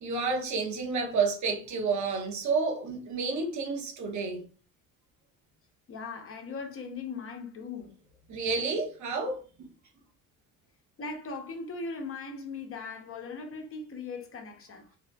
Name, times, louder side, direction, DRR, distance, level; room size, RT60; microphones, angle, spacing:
voice 1, 0.0-4.4 8.3-9.7, right 4 dB, 50° right, 0.9 m, -30 dB
voice 2, 5.9-7.9 11.0-14.9, left 4 dB, 35° left, 0.8 m, -39 dB
2.7 x 2.3 x 2.2 m
supercardioid pair, 90°, 37 cm